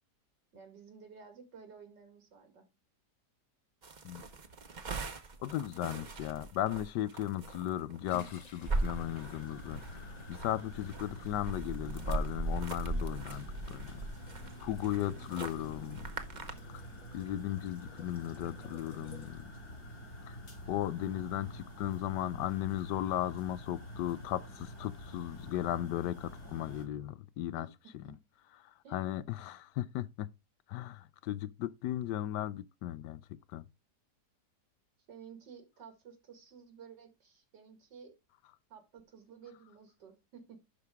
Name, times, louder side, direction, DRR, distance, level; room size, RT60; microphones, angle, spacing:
voice 1, 0.5-2.6 27.5-27.7 28.0-28.2 28.8-29.0 35.1-38.1 38.7-40.6, right 6 dB, 90° right, 2.8 m, -53 dB
sound 1, 3.8-16.5, right 2 dB, 35° right, 0.7 m, -39 dB
voice 2, 5.4-9.8 10.3-14.0 14.6-16.1 17.1-19.5 20.3-20.4 20.7-27.7 28.9-30.3 30.7-33.2 33.5-33.7, left 13 dB, 80° left, 1.2 m, -36 dB
sound 2, 7.6-20.0, left 2 dB, 30° left, 0.8 m, -58 dB
sound 3, 8.7-26.9, left 1 dB, 65° left, 4.1 m, -47 dB
11.5 x 4.7 x 3.5 m
omnidirectional pair, 1.8 m